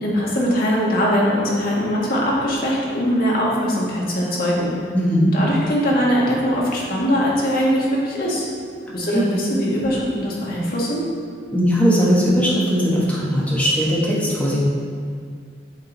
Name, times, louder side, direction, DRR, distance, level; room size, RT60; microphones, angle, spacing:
voice 1, 0.0-4.7 5.3-8.5 8.9-11.0, equal, 55° left, -5 dB, 1.5 m, -21 dB
voice 2, 4.9-5.3 9.1-9.3 11.5-14.6, equal, 10° left, -6 dB, 1.3 m, -19 dB
8.1 x 3.8 x 3.9 m, 2.1 s
head